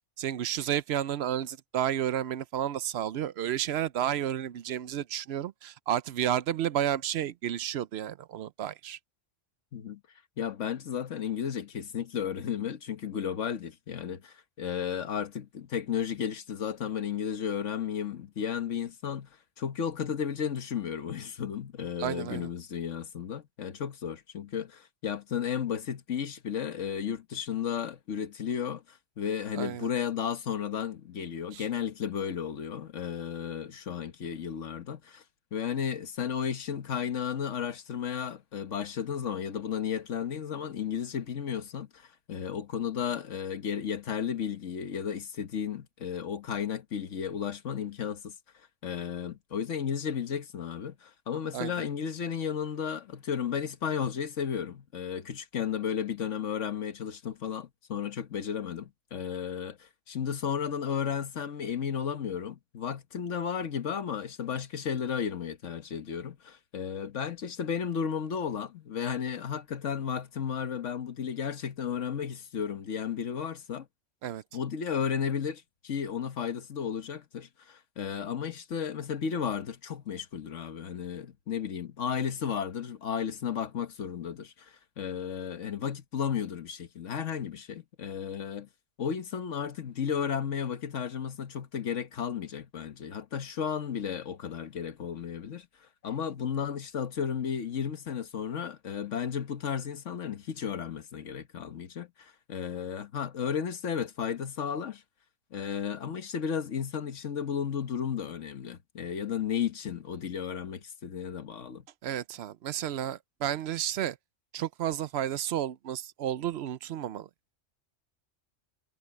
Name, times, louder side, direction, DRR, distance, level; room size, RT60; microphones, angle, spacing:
voice 1, 0.2-9.0 22.0-22.5 29.5-29.9 31.5-31.6 51.5-51.7 74.2-74.4 112.0-114.2 114.5-117.3, right 11 dB, 65° right, 0.8 m, -31 dB
voice 2, 10.4-19.3 19.6-35.2 35.5-48.3 48.8-73.9 74.5-88.7 89.0-95.7 96.0-105.0 105.5-111.8, left 8 dB, 85° left, 1.5 m, -33 dB
omnidirectional pair, 1.2 m